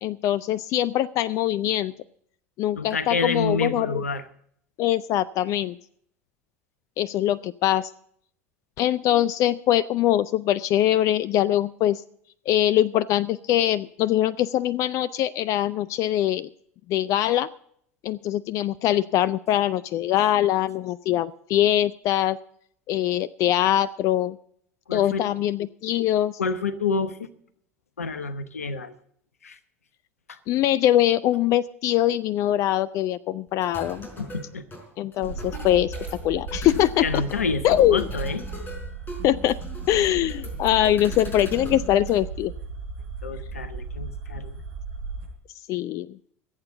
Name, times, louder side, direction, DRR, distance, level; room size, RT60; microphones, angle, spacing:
voice 1, 0.0-1.9 2.6-4.0 4.8-5.8 7.0-7.9 8.8-12.0 12.5-16.5 16.9-17.5 18.0-22.4 22.9-24.4 24.9-26.4 30.5-34.1 35.0-35.9 36.2-37.2 37.6-38.1 39.2-39.6 39.9-42.5 45.7-46.2, left 12 dB, 45° left, 19 dB, 0.4 m, -23 dB
voice 2, 2.8-4.2 24.9-25.2 26.4-27.3 28.0-28.9 29.4-29.6 30.3-30.4 34.2-34.6 37.0-38.4 43.2-44.6, left 4 dB, 80° left, 14 dB, 1.0 m, -28 dB
sound 1, 33.5-42.2, left 1 dB, 25° left, 4.8 m, -41 dB
sound 2, 35.2-45.3, right 4 dB, 65° right, 4.9 m, -35 dB
26.0 x 8.8 x 3.8 m, 0.66 s
figure-of-eight pair, 70°, 8 cm